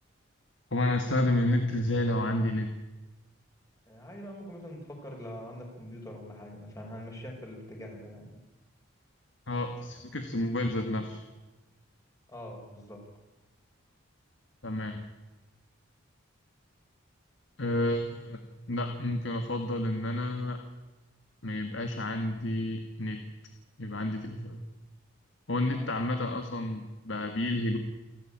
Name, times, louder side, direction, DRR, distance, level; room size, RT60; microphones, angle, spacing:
voice 1, 0.7-2.7 9.5-11.2 14.6-15.1 17.6-20.6 21.4-23.2 23.8-24.6 25.5-27.8, left 1 dB, 65° left, 6 dB, 1.9 m, -30 dB
voice 2, 3.9-8.4 12.3-13.0 25.7-25.9 26.1-26.4, equal, 15° left, 0 dB, 5.4 m, -44 dB
29.0 x 12.0 x 8.9 m, 1.1 s
head